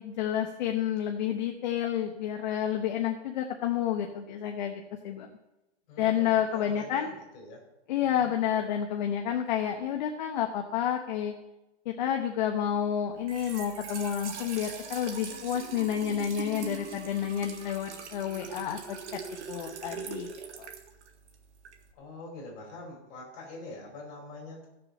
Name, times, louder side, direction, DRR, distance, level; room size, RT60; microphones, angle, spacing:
voice 1, 0.0-5.3 6.0-7.1 7.9-11.3 11.8-19.2 19.5-20.3 20.6-20.7, left 9 dB, 40° left, 4 dB, 1.0 m, -30 dB
voice 2, 5.9-7.6 8.1-8.3 22.0-24.7, left 2 dB, 25° left, -1 dB, 4.6 m, -45 dB
Trickle dribble / Fill (with liquid), 13.1-21.9, right 6 dB, 85° right, 2.0 m, -42 dB
15.5 x 6.9 x 5.4 m, 0.97 s
hypercardioid pair, 165°, 34 cm